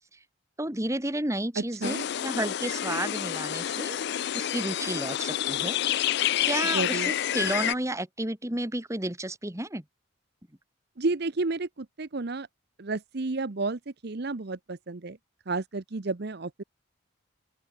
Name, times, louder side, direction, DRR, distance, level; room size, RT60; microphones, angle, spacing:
voice 1, 0.6-4.0 4.3-5.8 6.4-9.8, right 1 dB, 15° right, 1.9 m, -32 dB
voice 2, 1.6-2.1 6.7-7.1 11.0-12.5 12.8-15.2 15.5-16.6, right 3 dB, 50° right, 0.8 m, -31 dB
sound 1, 1.8-7.7, left 11 dB, 55° left, 0.4 m, -29 dB
open air
head